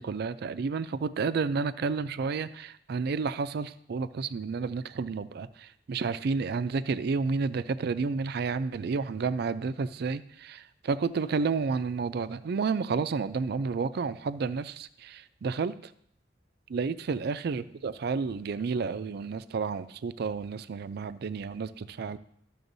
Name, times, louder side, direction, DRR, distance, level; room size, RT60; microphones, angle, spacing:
voice 1, 0.0-5.5 5.9-15.7 16.7-22.2, right 4 dB, 60° right, 14 dB, 0.4 m, -31 dB
12.5 x 6.9 x 2.7 m, 0.70 s
head